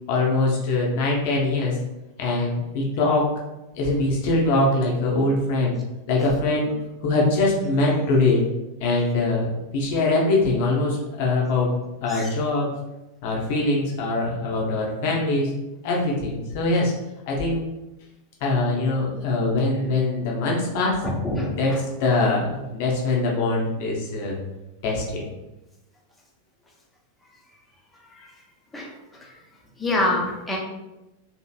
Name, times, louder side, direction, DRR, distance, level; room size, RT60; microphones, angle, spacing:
voice 1, 0.1-1.8 2.2-3.3 3.8-5.8 6.1-8.4 8.8-12.7 13.2-15.5 15.8-16.9 17.3-17.6 18.4-21.0 21.6-21.7 22.0-24.4 24.8-25.2, left 2 dB, 50° left, -3 dB, 0.8 m, -23 dB
voice 2, 21.0-21.8 28.1-28.3 28.7-29.4 29.8-30.6, left 2 dB, 10° left, -2 dB, 0.7 m, -26 dB
2.9 x 2.8 x 2.3 m, 0.99 s
figure-of-eight pair, 90°, 0 cm